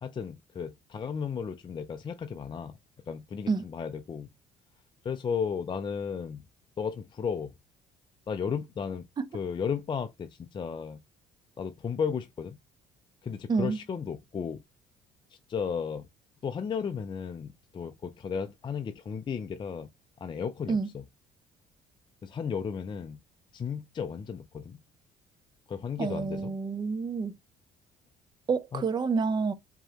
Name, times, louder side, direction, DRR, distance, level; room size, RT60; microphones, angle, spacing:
voice 1, 0.0-2.8 3.1-4.3 5.0-6.5 6.8-7.5 8.3-9.1 9.3-11.0 11.6-12.6 13.2-14.6 15.3-16.1 16.4-19.9 20.2-21.0 22.2-23.2 23.5-24.8 25.7-26.6 28.7-28.8, left 6 dB, 30° left, 0.4 m, -34 dB
voice 2, 26.0-27.3 28.5-29.5, right 4 dB, 25° right, 0.5 m, -28 dB
4.6 x 3.0 x 2.8 m
cardioid pair, 110°, 17 cm